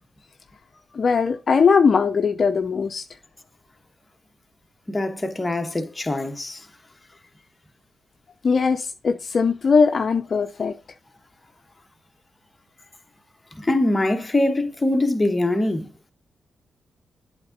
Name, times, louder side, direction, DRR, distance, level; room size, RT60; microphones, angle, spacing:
voice 1, 0.9-3.0 8.4-10.7, left 5 dB, 55° left, 0.5 m, -20 dB
voice 2, 4.9-6.6 13.6-15.9, left 1 dB, 20° left, 1.2 m, -23 dB
8.0 x 3.6 x 5.2 m
cardioid pair, 60°, 0 cm